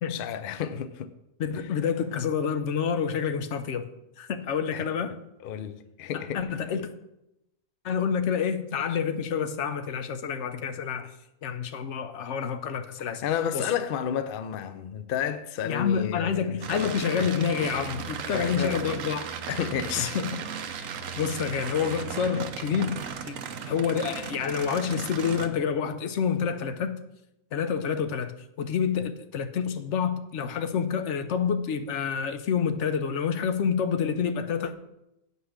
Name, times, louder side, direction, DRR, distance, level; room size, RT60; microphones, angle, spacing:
voice 1, 0.1-1.1 4.7-4.9 5.4-6.5 13.0-16.3 16.7-17.3 18.3-18.8 19.5-20.2, left 9 dB, 75° left, 0.5 m, -31 dB
voice 2, 1.4-3.9 4.2-5.2 6.1-6.9 7.8-11.1 11.4-13.2 13.5-13.7 15.6-19.3 20.0-20.4 21.2-27.0 27.5-34.7, left 7 dB, 60° left, 0.9 m, -28 dB
sound 1, 16.6-25.5, right 7 dB, 65° right, 1.1 m, -36 dB
8.2 x 5.4 x 6.4 m
omnidirectional pair, 1.6 m